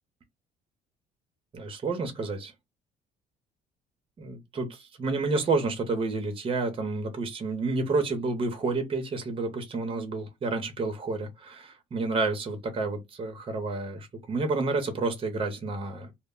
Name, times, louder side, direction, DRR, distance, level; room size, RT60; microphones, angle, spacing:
voice 1, 1.5-2.5 4.2-16.1, right 3 dB, 30° right, 0.7 m, -30 dB
2.1 x 2.0 x 3.6 m
cardioid pair, 110°, 17 cm